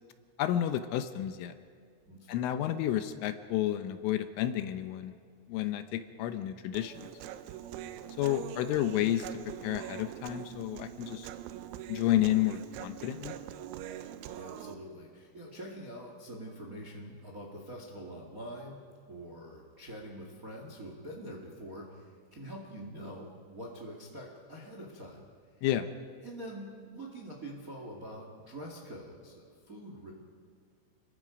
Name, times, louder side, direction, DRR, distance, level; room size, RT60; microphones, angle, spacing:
voice 1, 0.4-1.5 2.3-5.1 5.5-6.9 8.2-11.3 11.9-13.4 25.6-25.9, left 12 dB, 80° left, 10 dB, 3.2 m, -31 dB
voice 2, 2.0-2.5 7.8-8.0 14.3-18.8 19.1-25.2 26.2-30.1, equal, 70° right, 0 dB, 0.8 m, -45 dB
Human voice, 6.7-14.8, right 11 dB, 90° right, 3.6 m, -43 dB
29.0 x 21.5 x 5.2 m, 2.1 s
omnidirectional pair, 6.0 m